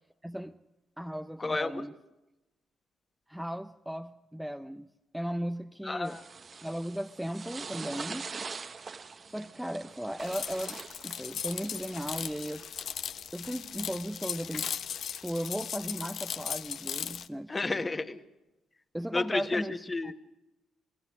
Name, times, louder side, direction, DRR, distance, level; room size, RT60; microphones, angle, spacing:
voice 1, 0.2-0.5 1.0-1.9 3.3-4.9 5.1-6.2 6.6-8.3 9.3-12.7 13.3-14.7 15.2-17.8 18.9-20.1, equal, ahead, 0.7 m, -36 dB
voice 2, 1.4-1.8 5.8-6.2 17.5-18.2 19.1-20.1, left 3 dB, 25° left, 1.6 m, -31 dB
sound 1, 6.0-12.9, right 5 dB, 40° right, 1.1 m, -44 dB
sound 2, 10.2-17.3, left 8 dB, 65° left, 1.0 m, -38 dB
28.5 x 19.0 x 6.4 m
cardioid pair, 90°, 0 cm